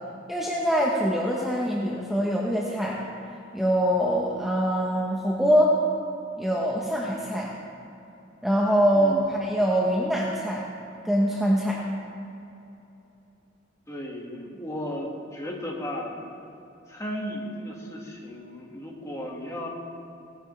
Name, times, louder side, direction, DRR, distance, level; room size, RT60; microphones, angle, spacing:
voice 1, 0.3-3.0 3.5-5.7 6.4-7.5 8.4-10.6 11.0-11.8, equal, ahead, -4 dB, 1.0 m, -24 dB
voice 2, 8.9-9.3 13.9-16.2 16.9-19.7, equal, 15° left, -1 dB, 1.8 m, -35 dB
18.0 x 10.5 x 3.3 m, 2.8 s
head